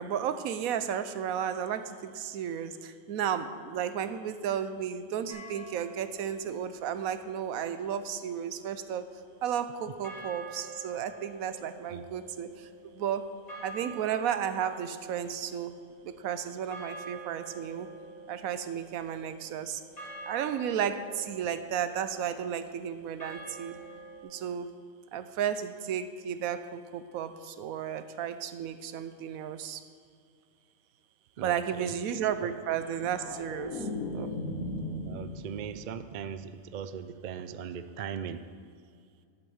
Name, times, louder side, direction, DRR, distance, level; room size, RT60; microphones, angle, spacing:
voice 1, 0.0-9.1 9.4-13.2 13.6-15.8 16.0-17.9 18.3-19.8 20.3-23.8 24.2-24.7 25.1-29.8 31.4-33.9 34.1-34.3, right 8 dB, 85° right, 11 dB, 1.1 m, -33 dB
sound 1, 5.3-6.4 10.0-24.2, right 3 dB, 30° left, 2.2 m, -47 dB
voice 2, 31.4-31.9 32.4-32.5 35.1-38.4, right 7 dB, 65° right, 11 dB, 0.4 m, -39 dB
sound 2, 32.7-35.9 36.3-36.6, left 1 dB, 85° left, 1.8 m, -37 dB
8.7 x 7.2 x 7.8 m, 2.2 s
omnidirectional pair, 1.4 m